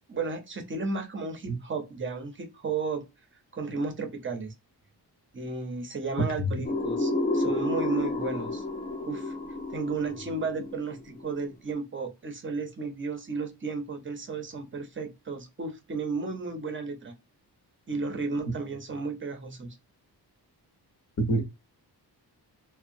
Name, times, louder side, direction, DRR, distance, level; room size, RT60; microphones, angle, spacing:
voice 1, 0.1-3.0 3.5-4.5 5.3-8.6 9.0-9.3 9.7-17.2 17.9-19.8, right 4 dB, 30° right, 0.6 m, -33 dB
voice 2, 6.2-6.5 21.2-21.4, right 1 dB, 45° left, 0.8 m, -26 dB
sound 1, 6.6-11.4, left 2 dB, 20° left, 0.4 m, -31 dB
2.8 x 2.1 x 2.6 m
wide cardioid pair, 150°, 40 cm